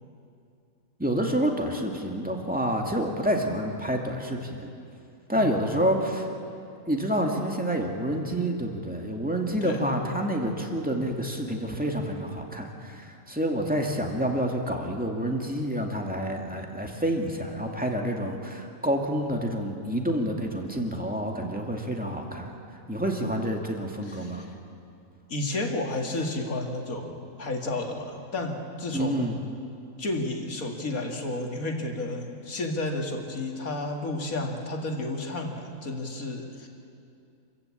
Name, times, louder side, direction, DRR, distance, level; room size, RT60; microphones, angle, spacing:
voice 1, 1.0-4.7 5.3-6.3 6.9-22.5 22.9-24.4 28.9-29.4, equal, 5° right, 1 dB, 2.2 m, -28 dB
voice 2, 5.3-5.8 9.6-9.9 23.2-23.3 24.0-24.5 25.3-29.4 30.0-36.7, left 2 dB, 80° left, 2 dB, 2.6 m, -32 dB
27.0 x 15.0 x 8.6 m, 2.5 s
omnidirectional pair, 1.5 m